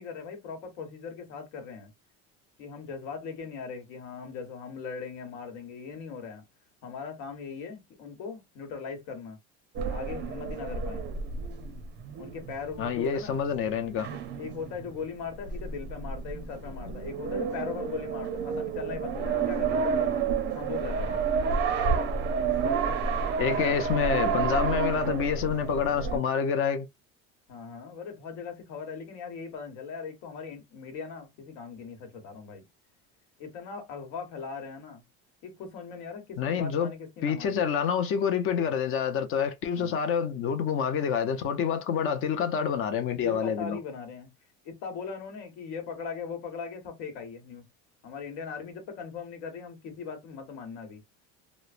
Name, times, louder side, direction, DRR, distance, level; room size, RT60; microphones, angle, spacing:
voice 1, 0.0-1.9 2.6-6.4 6.8-9.4 9.9-11.1 12.2-13.4 13.8-20.2 20.5-21.2 27.5-32.6 33.4-35.0 35.4-37.6 39.7-39.9 43.2-44.3 44.6-47.6 48.0-51.0, left 5 dB, 75° left, 1.2 m, -39 dB
sound 1, 9.8-26.2, right 5 dB, 35° right, 0.5 m, -30 dB
voice 2, 12.8-14.1 23.4-26.9 36.4-36.9 37.2-43.8, left 7 dB, 40° left, 0.5 m, -27 dB
3.0 x 2.0 x 2.4 m
cardioid pair, 145°, 32 cm